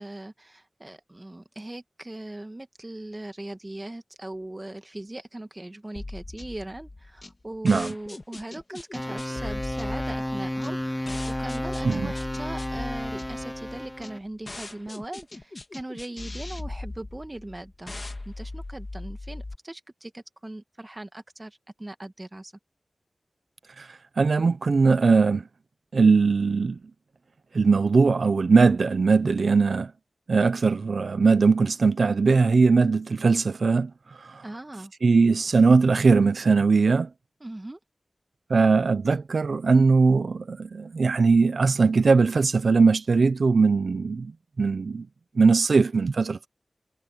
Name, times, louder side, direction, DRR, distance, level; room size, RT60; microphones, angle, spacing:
voice 1, 0.0-17.9 18.2-22.5 34.4-34.9 37.4-37.8, right 1 dB, 25° right, 1.6 m, -39 dB
sound 1, 5.9-19.5, left 2 dB, 40° left, 1.9 m, -39 dB
sound 2, 8.9-14.2, left 1 dB, 10° left, 2.4 m, -32 dB
voice 2, 23.8-25.4 25.9-26.8 27.5-29.9 30.3-33.9 34.2-34.4 35.0-37.1 38.5-45.1 45.4-46.5, right 4 dB, 90° right, 0.5 m, -20 dB
wide cardioid pair, 75°, 0 cm